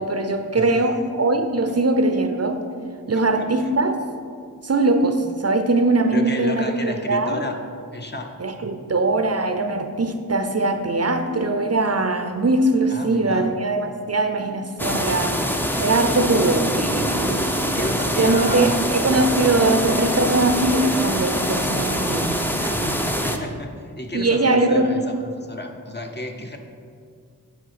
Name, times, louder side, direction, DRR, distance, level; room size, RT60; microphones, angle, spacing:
voice 1, 0.0-2.6 3.1-4.0 4.6-7.4 8.4-15.4 15.8-17.4 17.7-17.8 18.2-23.2 24.1-24.9, right 2 dB, 45° right, 7 dB, 0.6 m, -21 dB
voice 2, 0.5-0.9 1.7-1.8 3.1-3.5 6.1-7.6 7.9-8.3 12.9-13.5 17.3-18.8 23.1-26.6, left 1 dB, 30° left, 3 dB, 0.9 m, -32 dB
sound 1, 14.8-23.4, equal, 5° left, 0.6 m, -24 dB
8.2 x 5.7 x 5.8 m, 2.2 s
wide cardioid pair, 70°, 34 cm